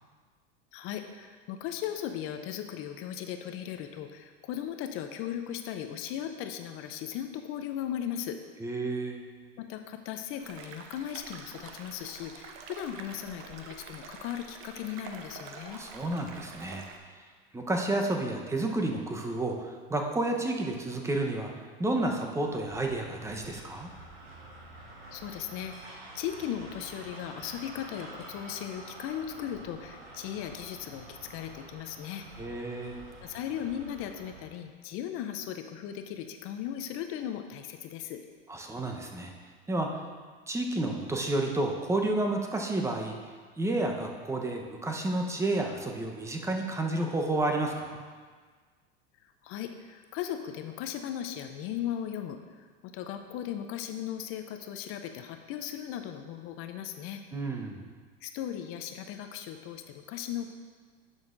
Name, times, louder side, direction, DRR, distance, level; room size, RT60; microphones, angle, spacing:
voice 1, 0.7-8.4 9.6-15.8 25.1-32.3 33.2-38.2 49.4-57.2 58.2-60.5, left 10 dB, 50° left, 7 dB, 0.6 m, -37 dB
voice 2, 8.6-9.2 15.7-16.8 17.5-21.5 21.8-23.9 32.4-33.0 38.5-39.3 39.7-40.0 40.5-43.1 43.6-48.0 57.3-57.8, right 2 dB, 10° right, 2 dB, 0.9 m, -30 dB
sound 1, 10.4-17.0, right 5 dB, 45° right, 0.9 m, -47 dB
sound 2, 22.4-34.5, right 2 dB, 90° right, 1.9 m, -48 dB
10.5 x 6.4 x 2.6 m, 1.5 s
supercardioid pair, 110°, 29 cm